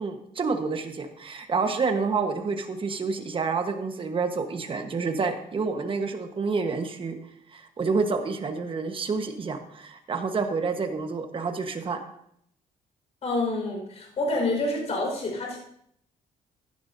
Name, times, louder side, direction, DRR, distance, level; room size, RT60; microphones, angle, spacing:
voice 1, 0.0-7.1 7.5-12.0, right 4 dB, 35° right, 6 dB, 1.4 m, -28 dB
voice 2, 13.2-15.6, left 2 dB, 45° left, 0 dB, 5.3 m, -27 dB
16.0 x 11.5 x 2.8 m, 0.71 s
cardioid pair, 120°, 16 cm